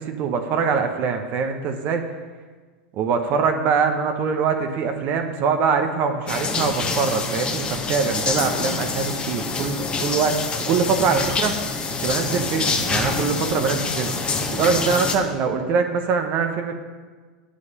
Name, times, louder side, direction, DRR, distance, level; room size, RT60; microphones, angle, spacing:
voice 1, 0.0-2.0 2.9-11.5 12.0-16.7, right 5 dB, 45° right, 6 dB, 1.0 m, -23 dB
sound 1, 6.3-15.2, left 4 dB, 25° left, 1.4 m, -26 dB
8.3 x 8.0 x 5.4 m, 1.4 s
hypercardioid pair, 85°, 4 cm